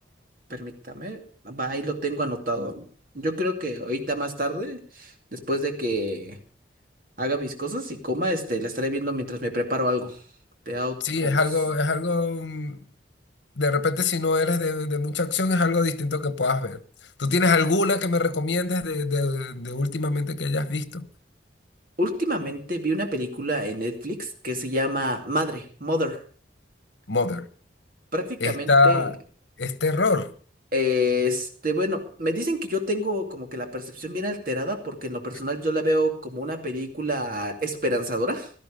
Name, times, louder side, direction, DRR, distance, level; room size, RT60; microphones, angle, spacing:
voice 1, 0.5-1.2 1.4-2.8 3.1-6.4 7.2-10.2 10.7-11.0 11.2-11.4 22.0-26.2 28.1-29.1 30.7-38.5, equal, 50° right, 2.6 m, -27 dB
voice 2, 11.0-12.8 13.6-16.8 17.2-21.1 27.1-27.5 28.4-29.2 29.6-30.3, left 3 dB, 75° left, 1.2 m, -23 dB
17.0 x 13.0 x 5.2 m
head